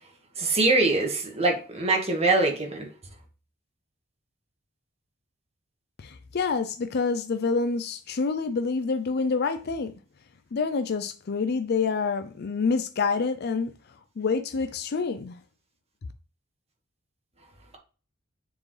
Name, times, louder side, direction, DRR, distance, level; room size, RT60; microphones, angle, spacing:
voice 1, 0.4-2.9, right 2 dB, 30° right, 1.7 m, -23 dB
voice 2, 6.0-9.9 10.5-13.7 14.2-15.4, left 4 dB, 50° left, 0.5 m, -27 dB
7.1 x 4.6 x 3.3 m
head